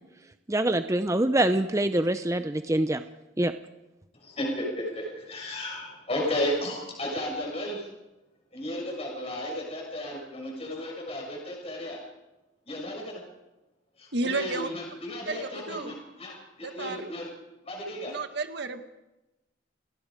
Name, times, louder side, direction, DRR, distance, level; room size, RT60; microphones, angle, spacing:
voice 1, 0.5-3.0 3.4-3.5, right 1 dB, 15° right, 9 dB, 0.6 m, -25 dB
voice 2, 4.1-7.9 8.5-12.0 12.7-13.2 14.0-17.3 17.6-18.1, left 1 dB, 30° left, -1 dB, 6.6 m, -34 dB
voice 3, 14.1-14.7 15.3-15.9 16.6-17.1 18.1-18.8, right 3 dB, 60° right, 7 dB, 1.7 m, -32 dB
29.0 x 18.0 x 5.1 m, 0.98 s
head